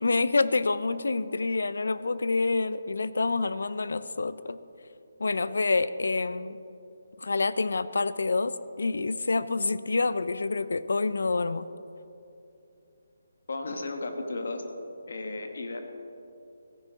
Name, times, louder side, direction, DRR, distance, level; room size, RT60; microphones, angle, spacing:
voice 1, 0.0-4.6 5.2-6.6 7.2-11.6, left 3 dB, 80° left, 15 dB, 0.5 m, -27 dB
voice 2, 13.5-14.6 15.1-15.8, left 2 dB, 65° left, 5 dB, 1.2 m, -34 dB
14.5 x 10.0 x 3.6 m, 2.7 s
hypercardioid pair, 175°, 0 cm